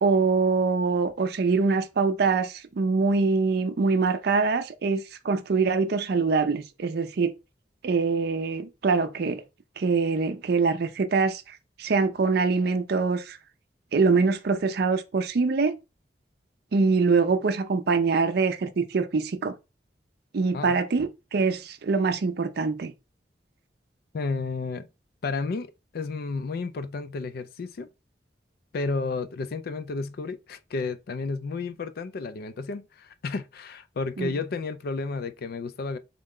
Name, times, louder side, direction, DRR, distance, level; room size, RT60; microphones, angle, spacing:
voice 1, 0.0-7.3 7.8-9.4 9.8-13.4 13.9-15.8 16.7-19.6 20.3-22.9 34.2-34.3, right 4 dB, 60° right, 0.5 m, -24 dB
voice 2, 24.1-24.9 25.2-27.9 28.7-36.0, left 4 dB, 60° left, 0.4 m, -32 dB
3.6 x 2.1 x 3.6 m
head